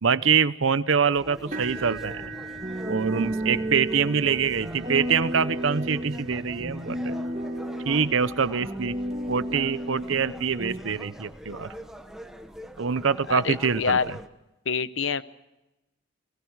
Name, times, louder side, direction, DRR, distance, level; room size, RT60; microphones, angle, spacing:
voice 1, 0.0-2.3 2.9-7.1 7.9-9.0 9.3-11.7 12.8-14.2, right 6 dB, 70° right, 16 dB, 0.7 m, -25 dB
sound 1, 1.1-14.3, equal, ahead, 1.1 m, -43 dB
sound 2, 1.5-9.5 10.2-10.4 10.9-11.0 12.3-12.4, right 3 dB, 40° right, 4.8 m, -43 dB
sound 3, 2.6-10.8, right 1 dB, 25° right, 2.3 m, -32 dB
voice 2, 13.3-14.1 14.7-15.2, left 5 dB, 65° left, 15 dB, 0.8 m, -26 dB
29.5 x 19.5 x 4.7 m, 0.97 s
head